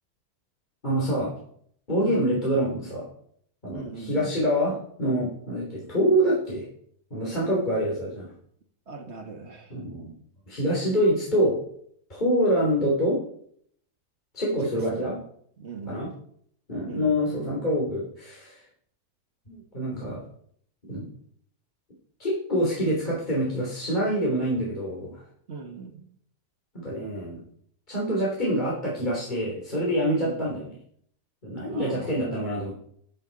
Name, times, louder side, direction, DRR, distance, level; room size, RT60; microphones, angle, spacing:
voice 1, 0.8-1.3 1.9-3.1 3.6-6.7 7.1-8.3 9.7-10.1 10.5-11.6 12.1-13.2 14.3-15.2 15.9-16.1 16.7-18.6 19.5-20.2 20.9-21.1 22.2-25.2 26.7-27.4 27.9-30.7 31.4-32.8, equal, 30° left, -5 dB, 3.5 m, -26 dB
voice 2, 2.0-2.4 3.7-4.3 8.9-9.8 14.6-15.1 15.6-16.0 16.8-17.2 25.5-26.0 30.0-30.6 31.7-32.3, right 4 dB, 45° right, 4 dB, 1.9 m, -39 dB
15.0 x 10.0 x 4.1 m, 0.65 s
omnidirectional pair, 1.6 m